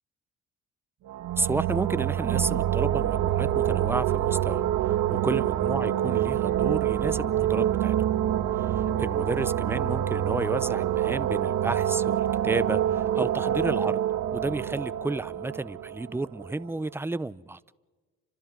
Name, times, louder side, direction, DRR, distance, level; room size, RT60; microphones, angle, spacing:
sound 1, 1.1-16.6, right 11 dB, 85° right, 1.3 m, -26 dB
voice 1, 1.4-4.6 5.1-8.0 8.6-14.0 14.3-17.6, right 2 dB, 10° right, 0.6 m, -32 dB
29.5 x 26.0 x 3.9 m
cardioid pair, 90°, 30 cm